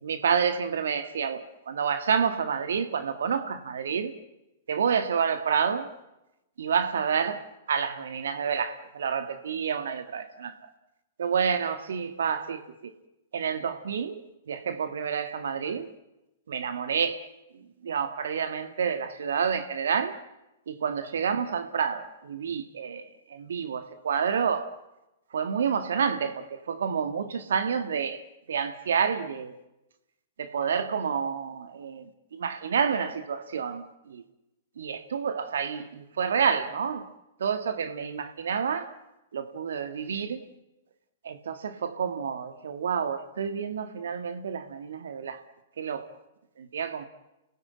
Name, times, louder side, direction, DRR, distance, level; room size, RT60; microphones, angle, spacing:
voice 1, 0.0-4.1 4.7-5.9 6.6-10.6 11.2-12.6 13.3-14.2 14.5-15.9 16.5-17.2 17.5-20.2 20.7-24.7 25.3-28.2 28.5-29.5 30.4-34.2 34.8-37.1 37.4-38.9 39.3-40.5 41.2-45.4 45.8-46.1 46.6-47.0, right 6 dB, 65° right, 1.6 m, -29 dB
30.0 x 17.0 x 8.8 m
figure-of-eight pair, 110°, 0 cm